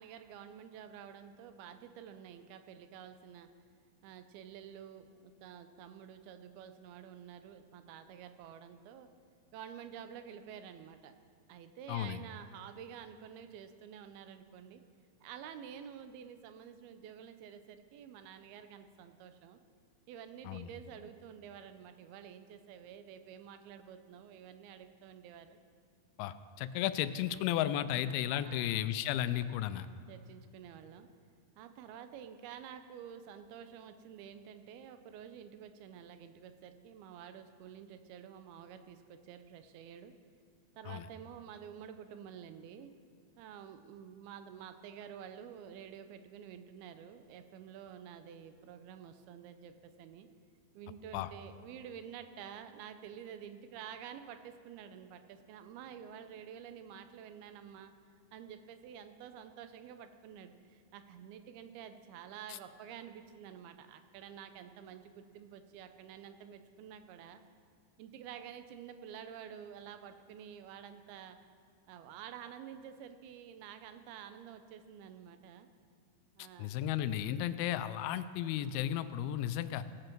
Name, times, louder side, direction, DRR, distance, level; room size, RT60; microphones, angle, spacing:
voice 1, 0.0-3.5 4.0-9.1 9.5-11.1 11.5-14.8 15.2-19.6 20.1-25.6 28.4-28.8 30.1-31.1 31.6-40.2 40.8-42.9 43.4-50.3 50.7-57.9 58.3-67.4 68.0-71.4 71.9-75.7 76.4-76.7, right 8 dB, 90° right, 9 dB, 2.6 m, -50 dB
voice 2, 11.9-12.2 20.5-20.7 26.2-29.9 40.9-41.1 51.1-51.3 76.6-79.9, left 11 dB, 90° left, 13 dB, 2.5 m, -34 dB
18.5 x 7.8 x 4.6 m, 2.1 s
omnidirectional pair, 4.3 m